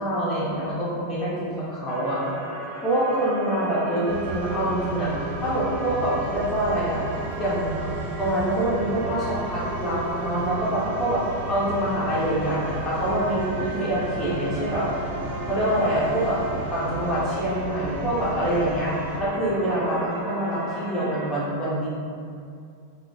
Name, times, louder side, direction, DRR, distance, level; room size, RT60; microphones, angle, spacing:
voice 1, 0.0-2.3 2.6-5.1 5.4-7.0 7.4-7.9 8.2-11.2 11.5-14.9 15.5-16.4 16.7-21.9, right 1 dB, 20° left, -8 dB, 0.6 m, -25 dB
sound 1, 1.9-21.3, right 3 dB, 35° right, 0.3 m, -36 dB
sound 2, 4.1-19.2, right 2 dB, 75° right, 0.7 m, -35 dB
sound 3, 12.9-19.7, left 1 dB, 80° left, 0.5 m, -41 dB
2.5 x 2.1 x 2.5 m, 2.4 s
figure-of-eight pair, 90°, 0 cm